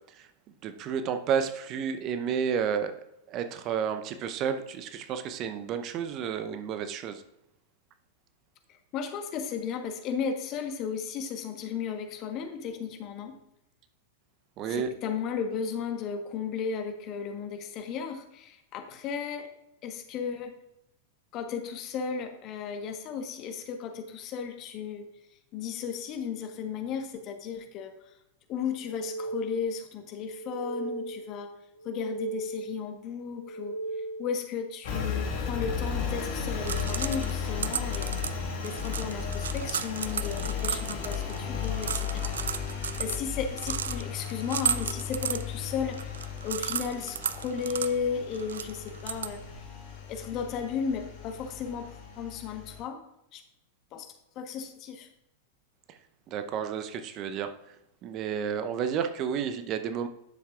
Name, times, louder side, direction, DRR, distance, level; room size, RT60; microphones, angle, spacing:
voice 1, 0.6-2.9 3.3-7.2 14.6-14.9 56.3-57.5 58.0-60.1, right 7 dB, 40° right, 9 dB, 0.7 m, -31 dB
voice 2, 8.9-13.3 14.7-19.5 19.8-20.6 21.3-25.1 25.5-27.9 28.5-31.5 31.8-33.8 34.2-38.1 38.6-42.3 43.0-46.1 46.4-49.4 50.1-53.0 53.3-53.4 53.9-54.1 54.3-55.1, left 6 dB, 40° left, 6 dB, 1.2 m, -34 dB
sound 1, 28.8-29.9 30.3-31.4 31.8-32.9 33.3-34.5, right 2 dB, 90° left, 0.5 m, -37 dB
Engine, 34.8-52.8, left 6 dB, 60° left, 2.8 m, -35 dB
sound 2, 36.4-49.7, right 8 dB, 75° right, 0.3 m, -35 dB
10.5 x 7.2 x 2.4 m, 0.85 s
figure-of-eight pair, 95°, 0 cm